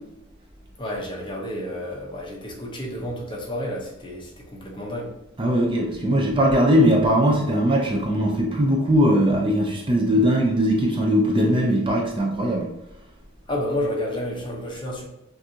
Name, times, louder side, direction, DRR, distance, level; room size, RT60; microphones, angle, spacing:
voice 1, 0.8-5.1 13.5-15.1, left 1 dB, 25° left, -2 dB, 0.9 m, -30 dB
voice 2, 5.4-12.7, equal, 25° right, 0 dB, 0.5 m, -20 dB
6.0 x 2.6 x 2.8 m, 0.89 s
head